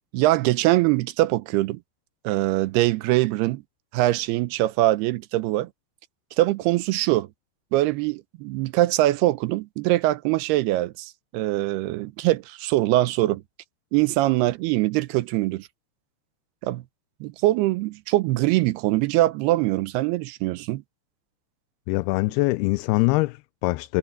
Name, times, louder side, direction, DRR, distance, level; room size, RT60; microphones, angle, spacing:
voice 1, 0.1-1.8 2.2-3.6 3.9-5.7 6.4-7.3 7.7-13.4 13.9-15.7 16.6-16.8 17.2-20.8, right 17 dB, 85° right, 2.7 m, -22 dB
voice 2, 21.9-24.0, left 22 dB, 85° left, 2.5 m, -23 dB
omnidirectional pair, 4.6 m